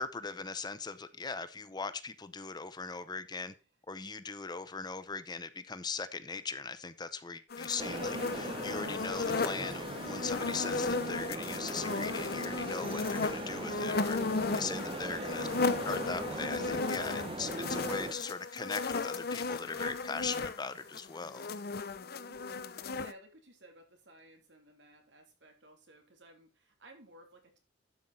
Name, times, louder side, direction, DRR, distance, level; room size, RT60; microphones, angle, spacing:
voice 1, 0.0-3.5 3.9-14.2 14.5-15.5 15.8-21.5, left 4 dB, 25° left, 0.7 m, -39 dB
sound 1, 7.5-23.1, left 4 dB, 60° left, 0.7 m, -35 dB
sound 2, 7.8-18.1, right 2 dB, 30° right, 0.7 m, -40 dB
voice 2, 15.0-15.7 18.0-18.2 22.1-22.7 23.0-27.6, right 1 dB, 90° right, 2.8 m, -57 dB
12.0 x 5.8 x 4.1 m
head